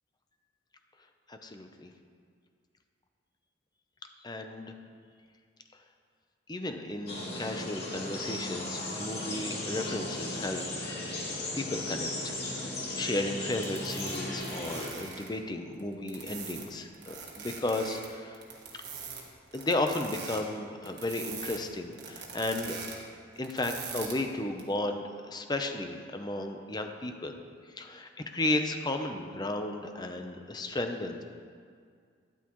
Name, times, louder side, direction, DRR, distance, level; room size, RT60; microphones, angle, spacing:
voice 1, 1.3-1.9 4.2-4.8 6.5-11.2 11.5-18.4 19.5-22.8 23.4-27.4 27.7-31.2, left 2 dB, 25° left, 5 dB, 0.7 m, -34 dB
sound 1, 7.1-14.9, left 2 dB, 60° left, 2.8 m, -36 dB
sound 2, 13.5-15.3 15.8-16.6 16.9-18.1 18.3-19.2 19.5-20.4 20.8-21.6 21.9-22.9 23.4-24.1 24.6-24.7, right 6 dB, 60° right, 1.6 m, -42 dB
12.0 x 11.0 x 3.1 m, 2.1 s
head